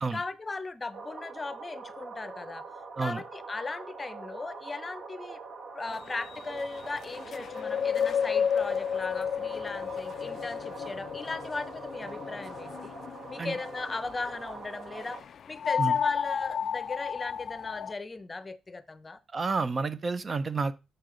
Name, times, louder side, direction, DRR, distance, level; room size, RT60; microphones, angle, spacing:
voice 1, 0.1-2.6 3.0-5.4 5.7-13.0 13.3-15.2 15.5-19.2, left 3 dB, 25° left, 0.6 m, -37 dB
sound 1, 0.9-15.2, right 4 dB, 65° right, 1.5 m, -44 dB
sound 2, 5.9-14.3 15.0-17.9, left 7 dB, 55° left, 0.3 m, -32 dB
voice 2, 19.3-20.7, right 4 dB, 35° right, 0.5 m, -30 dB
6.5 x 6.5 x 3.7 m
cardioid pair, 90°, 0 cm